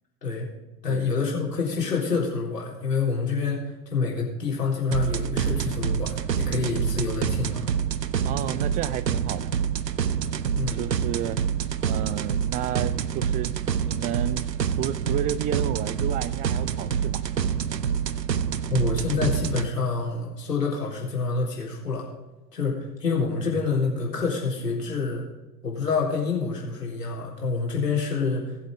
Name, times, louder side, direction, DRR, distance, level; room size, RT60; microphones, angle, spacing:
voice 1, 0.8-7.6 10.5-10.9 18.7-22.1 22.5-25.3 25.6-28.6, left 4 dB, 80° left, -2 dB, 3.9 m, -27 dB
sound 1, 4.9-19.7, right 8 dB, 90° right, 0.6 m, -27 dB
voice 2, 8.2-9.5 10.5-11.4 11.8-14.4 14.8-17.2, right 11 dB, 20° right, 15 dB, 0.4 m, -32 dB
20.0 x 7.7 x 3.6 m, 1.1 s
figure-of-eight pair, 80°, 48 cm